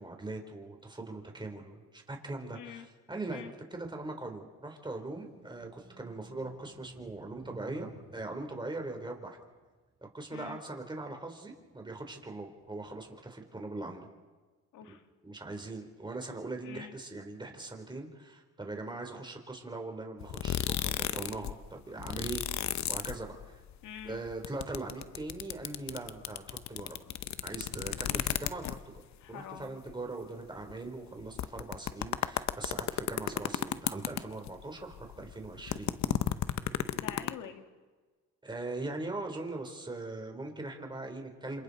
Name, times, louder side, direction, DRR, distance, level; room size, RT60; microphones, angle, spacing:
voice 1, 0.0-9.4 10.1-14.1 15.2-22.4 22.9-23.6 24.0-27.0 27.4-29.0 29.3-36.0 38.4-41.6, right 2 dB, 15° right, 3 dB, 3.7 m, -41 dB
voice 2, 2.5-2.9 3.3-3.5 10.3-10.6 14.7-15.0 16.6-17.0 23.8-24.2 29.2-29.8 36.9-37.6, left 9 dB, 85° left, 6 dB, 2.0 m, -45 dB
sound 1, 5.1-10.7 11.2-13.1, right 4 dB, 35° right, 6.1 m, -54 dB
sound 2, 20.2-21.5 21.8-23.7 24.0-29.0 29.6-29.7 29.9-30.0 30.7-30.8 31.2-34.6 34.9-37.3, left 11 dB, 65° left, 0.9 m, -33 dB
27.5 x 27.0 x 4.2 m, 1.3 s
cardioid pair, 90°, 30 cm